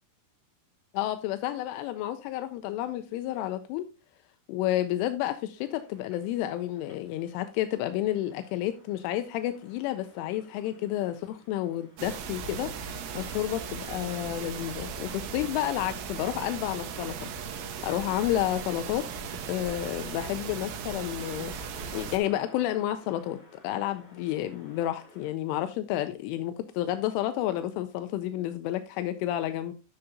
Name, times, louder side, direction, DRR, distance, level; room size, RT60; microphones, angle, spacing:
voice 1, 0.9-3.9 4.5-17.3 17.8-19.1 19.5-21.5 21.9-23.4 23.6-29.7, left 13 dB, 85° left, 3.0 m, -30 dB
sound 1, 5.5-25.3, left 1 dB, 20° left, 4.0 m, -56 dB
sound 2, 12.0-22.2, right 6 dB, 80° right, 3.7 m, -37 dB
11.5 x 6.7 x 2.7 m
omnidirectional pair, 5.7 m